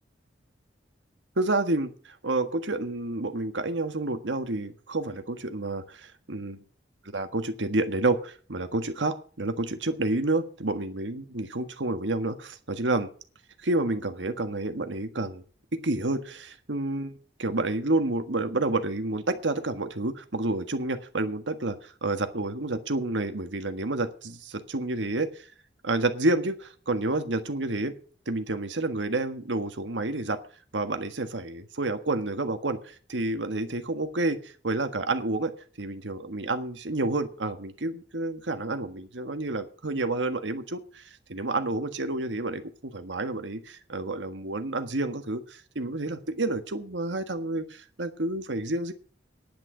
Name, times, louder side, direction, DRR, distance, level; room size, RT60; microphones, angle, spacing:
voice 1, 1.4-6.6 7.0-13.1 13.6-15.4 15.7-25.5 25.8-27.9 28.3-30.4 30.7-35.5 35.8-48.9, right 2 dB, 90° right, 8 dB, 1.5 m, -29 dB
10.5 x 6.5 x 8.7 m, 0.42 s
head